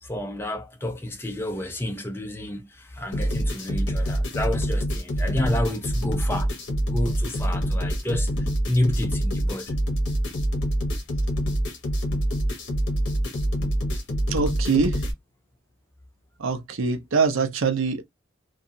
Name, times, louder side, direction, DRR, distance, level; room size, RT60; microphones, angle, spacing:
voice 1, 0.0-6.5 6.9-9.8, left 1 dB, 10° left, 0.4 m, -29 dB
sound 1, 3.1-15.1, equal, 60° left, 0.8 m, -26 dB
voice 2, 14.3-15.0 16.4-18.0, right 5 dB, 80° right, 0.6 m, -23 dB
2.8 x 2.3 x 2.5 m
head